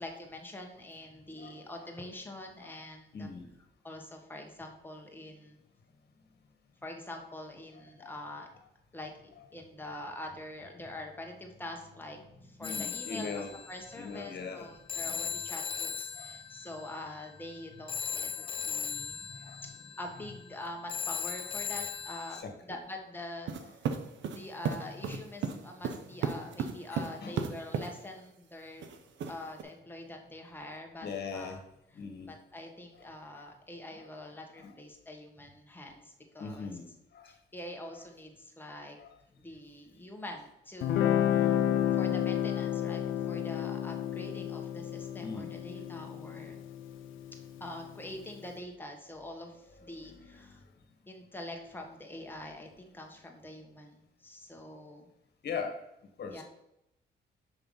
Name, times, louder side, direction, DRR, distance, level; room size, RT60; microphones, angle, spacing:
voice 1, 0.0-3.3 3.8-5.6 6.8-8.5 8.9-9.1 9.5-13.3 13.7-19.5 20.0-22.4 22.7-23.5 24.3-28.9 29.3-31.1 31.3-31.6 32.3-36.7 37.3-39.0 39.4-41.6 42.0-46.6 47.6-50.6 51.1-55.1 56.3-56.4, left 1 dB, 10° left, 1 dB, 1.3 m, -45 dB
voice 2, 1.4-1.9 2.6-2.8 3.1-3.5 8.0-8.1 12.6-13.5 13.9-14.7 15.0-15.3 16.1-16.3 18.4-18.6 18.9-19.0 19.3-19.8 20.1-20.3 22.3-22.8 23.6-23.7 24.9-25.2 26.9-27.4 31.0-31.6 31.9-32.3 32.9-33.0 33.3-33.4 33.9-34.0 34.5-34.8 36.4-36.9 37.1-37.3 39.0-39.1 41.9-42.0 42.5-42.6 43.3-43.4 45.2-45.5 49.7-50.5 55.4-55.7 56.2-56.4, left 5 dB, 55° left, 4 dB, 1.5 m, -41 dB
Telephone, 12.6-22.4, left 6 dB, 25° left, 0.5 m, -39 dB
sound 1, 23.5-27.9 28.8-29.6, right 6 dB, 70° right, 0.7 m, -34 dB
Guitar, 40.8-47.9, left 10 dB, 80° left, 0.6 m, -31 dB
6.2 x 3.4 x 5.4 m, 0.83 s
cardioid pair, 90°, 20 cm